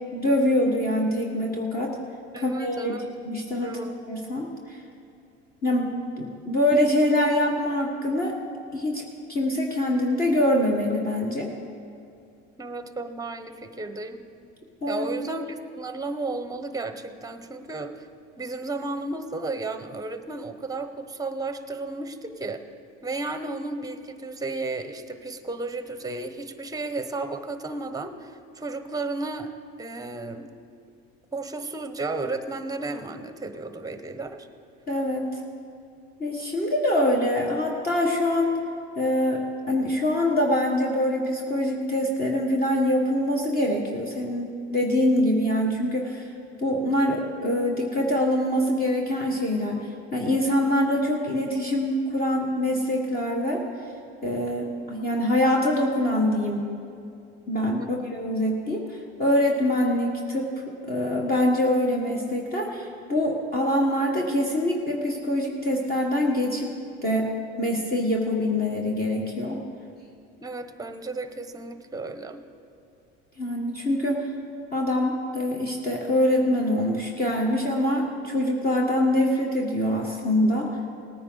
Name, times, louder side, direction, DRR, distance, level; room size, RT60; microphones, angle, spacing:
voice 1, 0.1-2.0 2.4-3.0 3.2-3.8 4.1-4.8 5.6-8.4 8.7-9.0 9.3-11.5 14.8-15.1 34.9-35.4 36.2-38.5 38.9-46.3 46.6-53.6 54.2-56.7 57.5-60.5 60.9-66.7 67.0-67.3 67.6-69.6 73.4-74.3 74.7-80.8, left 1 dB, 30° left, -1 dB, 1.6 m, -24 dB
voice 2, 2.3-3.0 3.6-4.0 12.6-14.3 14.9-18.1 18.4-22.6 23.0-29.5 29.8-30.5 31.3-34.5 57.8-58.1 70.4-72.4, right 3 dB, 10° right, 9 dB, 0.9 m, -33 dB
18.5 x 9.5 x 4.0 m, 2.5 s
supercardioid pair, 95°, 32 cm